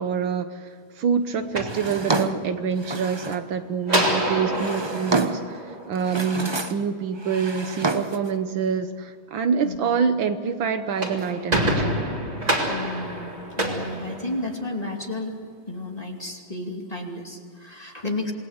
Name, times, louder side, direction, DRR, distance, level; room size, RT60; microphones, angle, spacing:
voice 1, 0.0-12.0, right 6 dB, 70° right, 9 dB, 1.7 m, -26 dB
sound 1, 1.4-2.6 3.9-6.3 10.7-14.8, right 1 dB, 20° right, 3.1 m, -27 dB
Drawer open or close, 1.7-3.5 4.3-5.6 6.0-6.9 7.2-8.3, right 3 dB, 40° right, 0.3 m, -29 dB
voice 2, 12.7-15.3 15.7-18.3, left 2 dB, 20° left, 1 dB, 2.5 m, -32 dB
27.5 x 19.5 x 8.0 m, 2.1 s
omnidirectional pair, 2.3 m